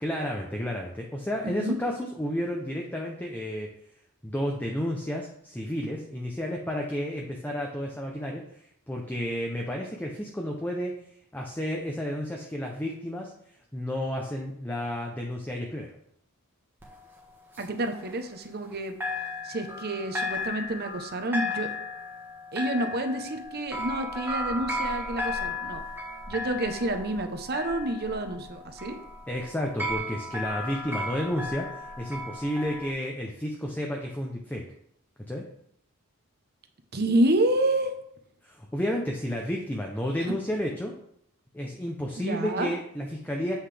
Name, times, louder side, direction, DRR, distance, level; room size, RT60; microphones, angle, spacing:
voice 1, 0.0-3.7 4.2-8.4 8.9-11.0 11.3-13.3 13.7-15.9 29.3-34.6 35.3-35.5 38.4-40.9 41.5-43.5, equal, 10° left, 0 dB, 0.6 m, -31 dB
voice 2, 1.4-1.7 17.6-19.0 19.4-21.7 22.5-25.8 26.3-29.0 36.9-37.9 42.2-42.7, right 1 dB, 45° right, 6 dB, 0.9 m, -28 dB
sound 1, 16.8-18.7 19.0-32.9, left 2 dB, 10° right, 1.3 m, -35 dB
7.9 x 5.6 x 3.4 m, 0.70 s
head